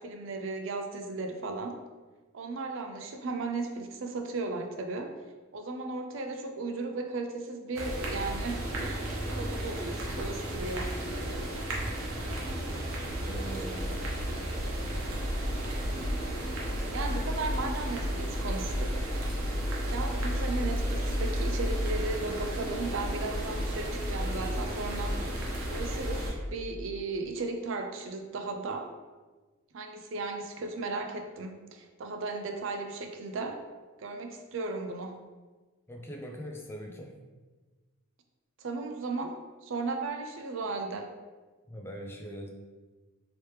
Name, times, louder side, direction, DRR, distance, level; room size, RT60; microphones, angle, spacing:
voice 1, 0.0-1.8 2.3-5.1 5.5-10.9 16.9-19.0 19.9-25.2 25.7-28.9 29.7-33.6 34.0-35.2 38.6-41.1, right 3 dB, 65° right, 4 dB, 0.4 m, -36 dB
sound 1, 7.7-26.3, equal, 90° right, 0.8 m, -32 dB
voice 2, 11.8-12.3 13.2-14.5 35.9-37.2 41.7-42.5, equal, 10° left, 1 dB, 0.3 m, -42 dB
3.2 x 2.9 x 3.1 m, 1.3 s
head